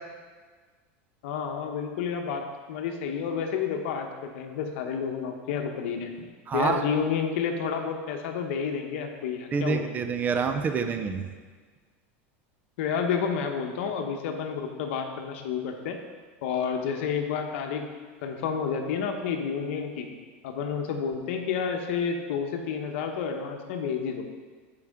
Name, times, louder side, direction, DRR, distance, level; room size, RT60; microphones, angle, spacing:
voice 1, 1.2-2.4 2.7-6.3 6.5-9.9 12.8-16.0 16.4-17.9 18.2-20.1 20.4-24.4, left 6 dB, 70° left, 4 dB, 1.0 m, -30 dB
voice 2, 6.5-6.8 9.5-11.2, right 5 dB, 25° right, 7 dB, 0.6 m, -27 dB
13.0 x 4.8 x 3.7 m, 1.5 s
supercardioid pair, 135°, 7 cm